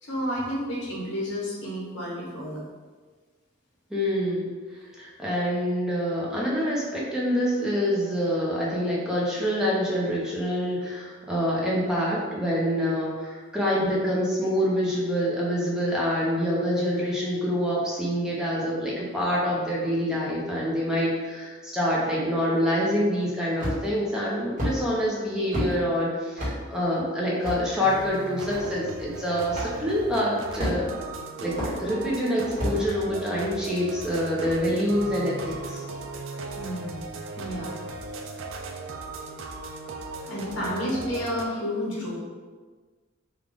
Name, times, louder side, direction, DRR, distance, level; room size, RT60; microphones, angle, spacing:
voice 1, 0.0-2.6 13.7-13.9 36.5-37.8 40.3-42.2, equal, 65° left, -5 dB, 1.2 m, -31 dB
voice 2, 3.9-4.5 5.0-30.9 31.4-31.5 31.8-35.8, equal, 5° right, -6 dB, 0.7 m, -26 dB
sound 1, 23.6-24.0 24.6-24.8 25.5-25.7 26.4-26.6 27.4-27.6 28.5-28.6 29.5-29.7 30.6-31.0 31.6-31.7 32.6-32.8, equal, 40° right, 1.3 m, -28 dB
sound 2, 27.8-41.5, right 3 dB, 75° right, 0.4 m, -37 dB
3.7 x 2.4 x 3.5 m, 1.4 s
head